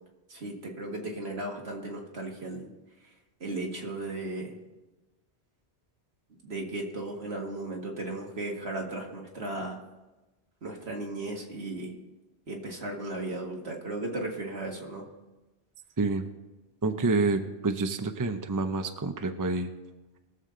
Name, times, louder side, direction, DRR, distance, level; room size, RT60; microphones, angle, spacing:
voice 1, 0.3-2.7 3.0-3.1 3.4-4.6 6.4-9.8 10.6-11.9 12.5-15.1, right 2 dB, 75° right, 0 dB, 2.2 m, -36 dB
voice 2, 16.8-19.7, right 3 dB, 20° right, 7 dB, 0.6 m, -28 dB
21.5 x 7.2 x 3.9 m, 1.1 s
omnidirectional pair, 1.1 m